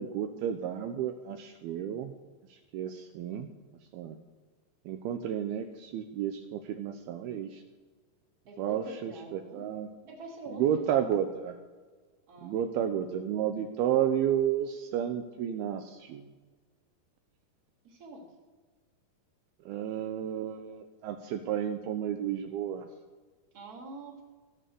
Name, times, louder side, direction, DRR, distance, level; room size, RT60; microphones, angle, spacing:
voice 1, 0.0-2.1 2.5-3.5 3.9-4.2 4.9-7.6 8.6-9.9 10.5-11.6 12.4-16.2 19.7-22.9, right 10 dB, 80° right, 6 dB, 2.4 m, -32 dB
voice 2, 8.5-9.6 10.1-10.9 12.3-12.5 17.8-18.3 23.5-24.2, right 2 dB, 30° right, 0 dB, 2.1 m, -45 dB
15.0 x 7.3 x 6.8 m, 1.4 s
omnidirectional pair, 4.7 m